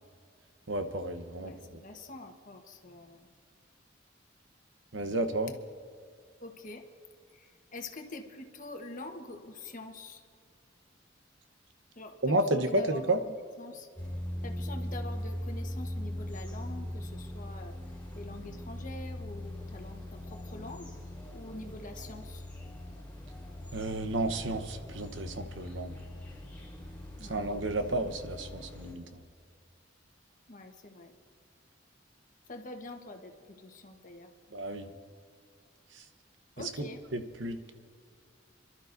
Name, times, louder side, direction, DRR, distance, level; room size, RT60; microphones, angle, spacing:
voice 1, 0.7-1.8 4.9-5.5 12.2-13.2 23.7-25.9 27.2-29.2 34.5-34.9 35.9-36.0 36.6-36.9 37.1-37.7, right 1 dB, 75° right, 7 dB, 1.0 m, -32 dB
voice 2, 1.4-3.3 6.4-6.8 7.3-10.2 11.9-13.9 14.4-17.7 18.1-20.9 21.3-22.4 27.2-27.5 30.5-31.1 32.5-34.3 36.6-37.0, left 2 dB, 45° left, 4 dB, 1.3 m, -45 dB
sound 1, 14.0-28.9, left 1 dB, 10° left, 3.8 m, -41 dB
29.0 x 12.0 x 2.7 m, 2.2 s
head